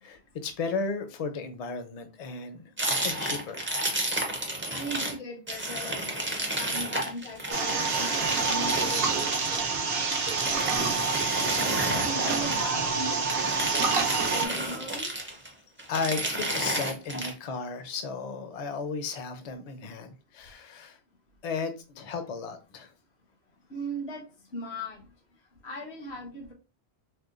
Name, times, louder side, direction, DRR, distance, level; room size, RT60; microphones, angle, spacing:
voice 1, 0.0-3.7 15.9-21.0 21.4-22.9, left 4 dB, 45° left, 8 dB, 0.5 m, -34 dB
sound 1, 2.8-5.2 5.5-12.7 13.1-15.5 15.8-17.3, right 1 dB, 15° right, 0.5 m, -31 dB
voice 2, 4.7-11.0 11.5-15.1 23.7-24.2 24.5-25.1 25.6-26.5, equal, 80° left, -1 dB, 1.2 m, -39 dB
sound 2, 7.5-14.5, right 4 dB, 65° right, 0.9 m, -27 dB
4.3 x 2.2 x 2.4 m, 0.31 s
omnidirectional pair, 1.1 m